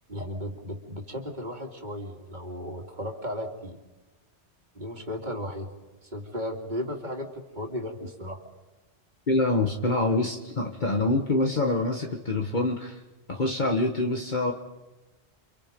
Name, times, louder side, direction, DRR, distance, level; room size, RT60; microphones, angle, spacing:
voice 1, 0.1-3.8 4.7-5.7 6.0-8.4, equal, 45° right, 3 dB, 3.1 m, -35 dB
voice 2, 9.3-13.0 13.3-14.5, left 2 dB, 45° left, 2 dB, 1.6 m, -25 dB
29.5 x 27.0 x 5.3 m, 1.1 s
omnidirectional pair, 1.1 m